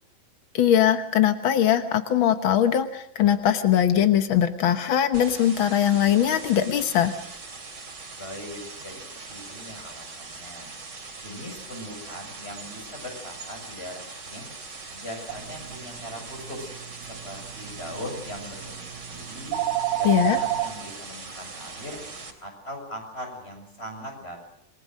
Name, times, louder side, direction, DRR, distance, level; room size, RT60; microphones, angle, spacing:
voice 1, 0.5-7.1 20.0-20.4, left 10 dB, 75° left, 8 dB, 1.1 m, -21 dB
sound 1, 5.1-22.3, right 4 dB, 30° right, 3.5 m, -41 dB
voice 2, 8.2-10.7 11.2-14.5 14.9-16.7 17.1-19.5 20.0-22.0 22.4-24.4, left 1 dB, 15° left, 3 dB, 7.2 m, -40 dB
sound 2, 15.3-20.7, right 12 dB, 75° right, 3.3 m, -32 dB
28.0 x 22.0 x 6.4 m, 0.70 s
omnidirectional pair, 3.9 m